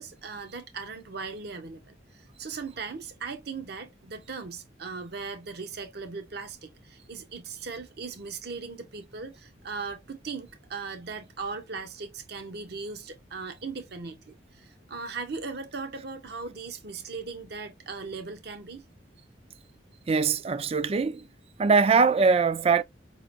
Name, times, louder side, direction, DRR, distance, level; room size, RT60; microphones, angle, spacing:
voice 1, 0.0-18.8, right 4 dB, 55° right, 0.7 m, -38 dB
voice 2, 20.1-21.2 21.6-22.8, right 5 dB, 30° right, 0.3 m, -22 dB
5.1 x 2.8 x 2.5 m
head